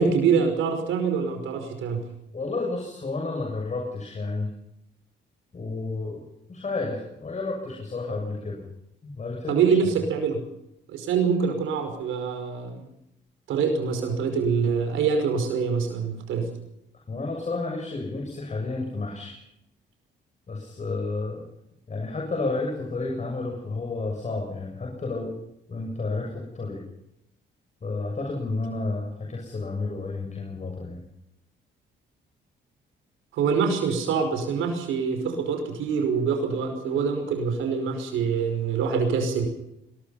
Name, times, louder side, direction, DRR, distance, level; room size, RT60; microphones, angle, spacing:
voice 1, 0.0-2.0 9.5-10.4 10.9-12.8 13.5-16.5 33.3-39.5, right 5 dB, 85° right, 6 dB, 5.3 m, -25 dB
voice 2, 2.3-4.5 5.5-6.2 6.5-8.6 9.0-9.5 17.1-19.4 20.5-21.5 21.9-25.3 25.7-26.8 27.8-31.0, left 3 dB, 35° left, 0 dB, 7.1 m, -31 dB
22.0 x 21.0 x 5.7 m, 0.82 s
cardioid pair, 90°, 20 cm